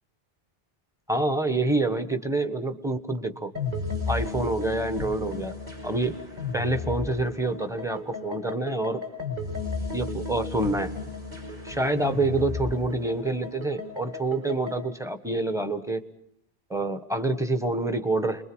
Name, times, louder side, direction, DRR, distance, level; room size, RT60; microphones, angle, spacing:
voice 1, 1.1-3.5 4.1-5.5 5.8-6.2 6.5-9.0 9.9-11.0 11.6-16.0 16.7-18.4, right 2 dB, 5° right, 8 dB, 1.3 m, -27 dB
sound 1, 3.5-14.8, left 3 dB, 45° right, 5.9 m, -34 dB
29.5 x 22.0 x 6.2 m, 0.72 s
omnidirectional pair, 1.0 m